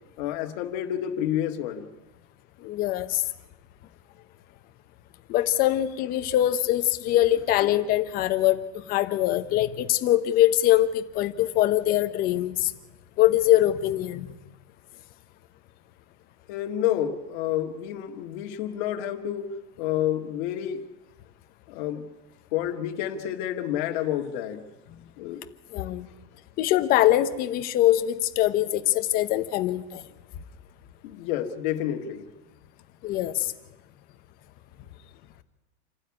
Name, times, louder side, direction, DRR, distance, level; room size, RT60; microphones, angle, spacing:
voice 1, 0.2-1.9 16.5-20.9 21.7-22.1 22.5-24.6 25.2-25.4 31.0-32.3, left 11 dB, 45° left, 4 dB, 2.0 m, -29 dB
voice 2, 2.6-3.2 5.3-12.7 13.2-14.4 25.7-26.1 26.6-30.0 33.0-33.5, left 13 dB, 25° left, 9 dB, 0.9 m, -23 dB
27.5 x 12.5 x 9.7 m, 1.0 s
supercardioid pair, 175°, 33 cm